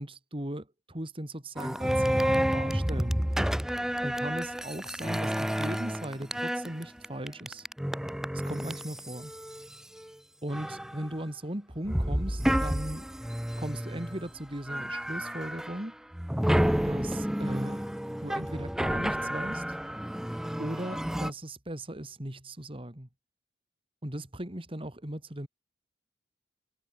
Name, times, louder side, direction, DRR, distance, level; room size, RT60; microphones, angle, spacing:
voice 1, 0.0-3.2 4.0-7.7 8.3-9.3 10.4-13.1 13.6-15.9 16.8-17.8 18.2-19.6 20.6-23.1 24.0-25.5, right 1 dB, 30° right, 2.7 m, -38 dB
sound 1, 1.6-10.1 10.5-11.2 11.8-14.3 14.7-15.8 16.1-21.3, equal, 5° right, 0.4 m, -30 dB
head